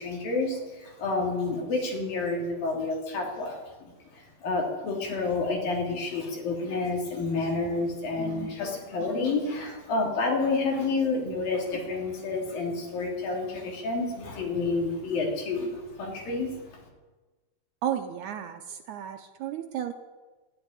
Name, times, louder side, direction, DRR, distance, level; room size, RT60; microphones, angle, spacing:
voice 1, 0.0-16.8, left 3 dB, 80° left, 0 dB, 4.6 m, -29 dB
voice 2, 17.8-19.9, right 10 dB, 75° right, 6 dB, 1.9 m, -33 dB
13.0 x 10.5 x 9.7 m, 1.2 s
omnidirectional pair, 4.0 m